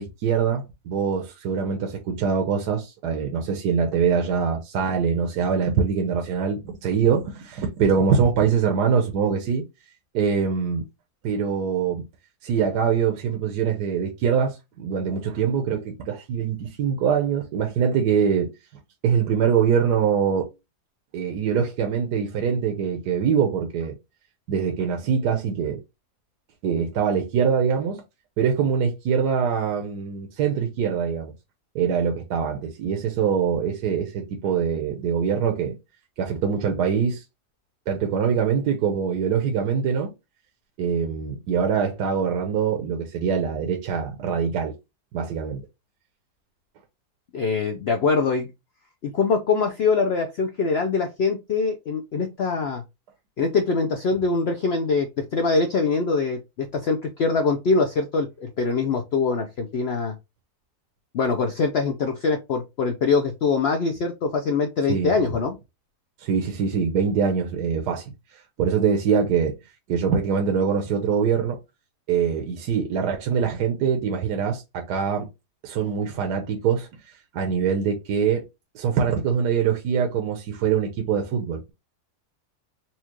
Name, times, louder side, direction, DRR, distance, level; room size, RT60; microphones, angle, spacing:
voice 1, 0.0-9.6 10.1-10.8 11.2-12.0 12.4-18.5 19.0-20.5 21.1-24.0 24.5-25.8 26.6-28.0 28.4-31.3 31.7-35.8 36.2-37.2 37.9-40.1 40.8-44.7 45.1-45.6 64.9-65.1 66.2-68.0 68.3-69.5 69.9-71.6 72.1-75.3 75.6-78.5 78.7-81.7, right 7 dB, 80° right, 1.3 m, -23 dB
voice 2, 47.3-48.5 49.0-52.8 53.4-60.1 61.1-65.6, left 4 dB, 75° left, 0.5 m, -23 dB
4.3 x 2.4 x 2.9 m
omnidirectional pair, 1.7 m